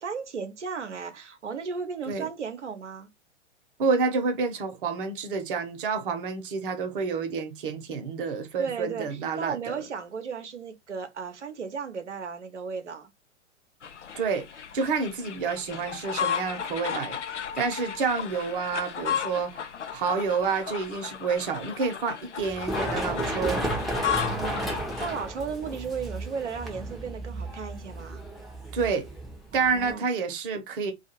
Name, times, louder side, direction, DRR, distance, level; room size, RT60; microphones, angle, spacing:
voice 1, 0.0-3.1 8.6-13.1 24.0-28.2 29.5-30.1, right 5 dB, 80° right, 0.8 m, -35 dB
voice 2, 3.8-9.8 14.2-14.5 14.7-17.2 17.5-19.6 19.9-23.6 28.7-29.1 29.5-30.9, right 5 dB, 50° right, 0.9 m, -29 dB
sound 1, 13.8-25.2, left 8 dB, 85° left, 0.5 m, -34 dB
Run, 22.4-29.9, right 1 dB, ahead, 0.6 m, -33 dB
2.6 x 2.4 x 2.9 m
figure-of-eight pair, 105°, 35 cm